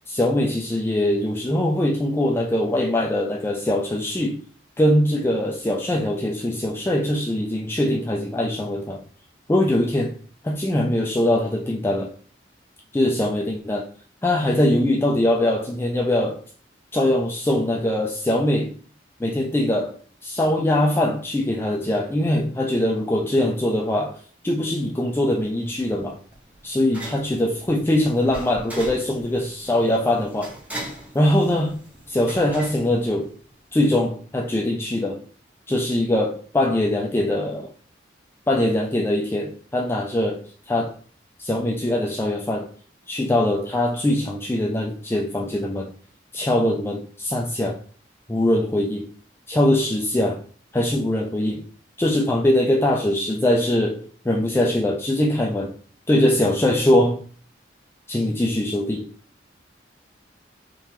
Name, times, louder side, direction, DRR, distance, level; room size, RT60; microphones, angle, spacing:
voice 1, 0.1-4.4 4.8-9.0 9.5-10.1 10.4-12.1 12.9-13.9 14.2-16.4 16.9-18.7 19.2-26.2 26.6-30.5 31.1-31.8 32.1-33.3 33.7-35.2 35.7-37.7 38.5-40.9 41.4-42.7 43.1-45.9 46.3-47.8 48.3-49.1 49.5-50.4 50.7-51.6 52.0-55.7 56.1-57.2 58.1-59.1, left 1 dB, 15° left, 0.3 m, -22 dB
sound 1, 25.4-33.7, right 1 dB, 10° right, 0.7 m, -41 dB
3.7 x 2.8 x 3.0 m
head